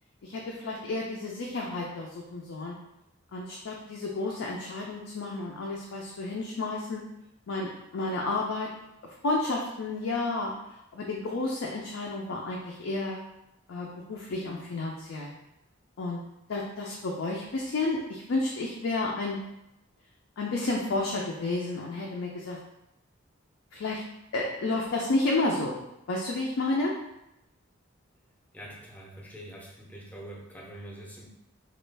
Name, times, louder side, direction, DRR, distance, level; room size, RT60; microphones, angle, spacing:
voice 1, 0.2-2.8 3.3-7.0 7.5-8.7 9.2-10.5 10.9-13.2 13.7-15.3 16.0-16.2 16.5-19.4 20.4-22.6 23.7-24.0 24.3-25.7 26.1-26.9, left 2 dB, 70° left, -2 dB, 0.4 m, -31 dB
voice 2, 28.5-31.3, right 1 dB, 5° left, -3 dB, 0.5 m, -44 dB
3.1 x 2.4 x 3.2 m, 0.88 s
head